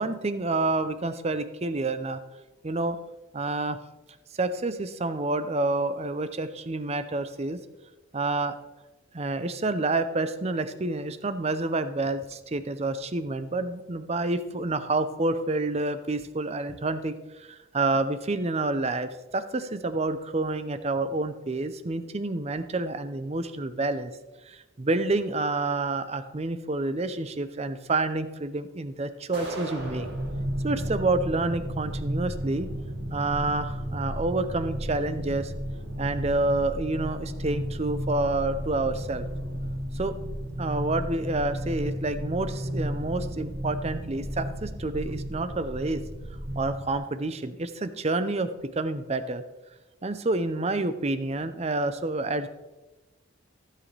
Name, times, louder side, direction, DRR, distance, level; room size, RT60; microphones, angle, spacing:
voice 1, 0.0-2.2 2.6-3.0 3.3-3.8 4.4-7.6 8.1-8.5 9.1-24.1 24.5-30.1 30.6-32.7 33.1-35.5 36.0-39.3 39.9-40.2 40.6-46.0 46.6-48.5 48.7-49.4 50.0-52.5, right 2 dB, 30° right, 12 dB, 0.6 m, -28 dB
sound 1, 29.3-30.3, right 1 dB, 55° right, 2.7 m, -37 dB
sound 2, 29.8-46.9, equal, 75° right, 1.3 m, -33 dB
15.0 x 7.5 x 3.3 m, 1.1 s
head